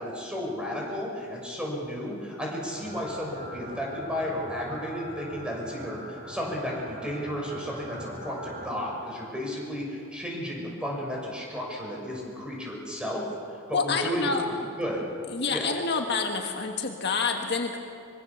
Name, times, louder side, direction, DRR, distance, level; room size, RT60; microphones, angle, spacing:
voice 1, 0.0-6.0 6.3-13.2 13.7-15.1 15.5-15.7, equal, 5° right, -2 dB, 6.5 m, -33 dB
sound 1, 2.7-8.7, right 1 dB, 55° right, 7.8 m, -42 dB
voice 2, 13.7-14.4 15.3-17.8, left 4 dB, 55° left, 3 dB, 1.6 m, -28 dB
24.5 x 23.5 x 7.1 m, 2.3 s
head